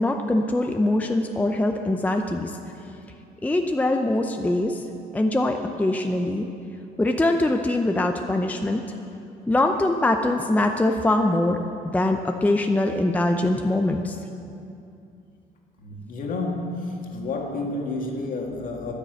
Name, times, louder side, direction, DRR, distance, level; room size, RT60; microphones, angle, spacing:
voice 1, 0.0-2.5 3.4-4.8 5.1-6.5 7.0-8.8 9.5-11.6 11.9-14.2, left 1 dB, 10° left, 4 dB, 0.6 m, -23 dB
voice 2, 15.8-18.9, left 2 dB, 55° left, 1 dB, 2.0 m, -30 dB
10.0 x 10.0 x 8.0 m, 2.6 s
cardioid pair, 110°, 17 cm